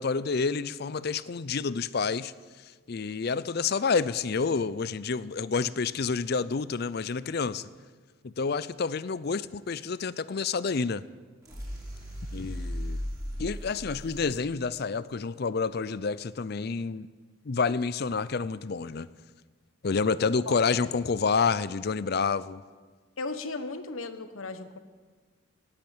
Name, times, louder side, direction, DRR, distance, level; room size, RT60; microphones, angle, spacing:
voice 1, 0.0-2.3 2.9-7.7 8.2-11.0 12.3-13.0 13.4-17.1 17.4-19.1 19.8-22.6, left 5 dB, 50° left, 17 dB, 0.5 m, -29 dB
sound 1, 11.4-14.4, equal, 15° right, 4.2 m, -36 dB
voice 2, 20.5-20.9 23.2-24.8, left 3 dB, 80° left, 10 dB, 1.2 m, -36 dB
18.0 x 8.8 x 9.0 m, 1.4 s
head